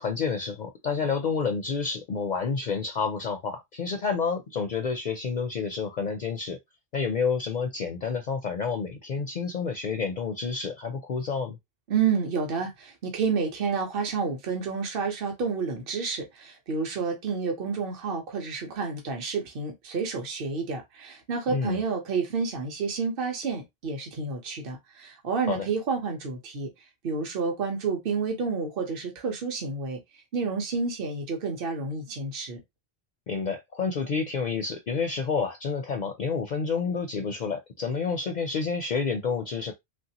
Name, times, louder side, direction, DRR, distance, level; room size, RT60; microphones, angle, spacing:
voice 1, 0.0-6.6 6.9-11.6 21.5-21.8 25.5-25.7 33.3-39.7, left 5 dB, 55° left, 0.5 m, -29 dB
voice 2, 11.9-26.7 27.0-30.0 30.3-32.6, right 5 dB, 60° right, 1.1 m, -30 dB
3.2 x 2.6 x 2.8 m
omnidirectional pair, 1.1 m